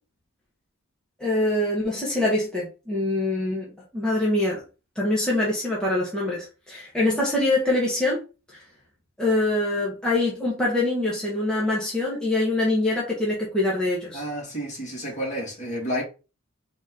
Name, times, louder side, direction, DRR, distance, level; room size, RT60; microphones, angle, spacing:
voice 1, 1.2-4.6 5.0-8.2 9.2-14.2, left 2 dB, 5° left, 1.2 m, -24 dB
voice 2, 14.1-16.0, equal, 35° left, 2.3 m, -30 dB
4.0 x 3.0 x 3.8 m
head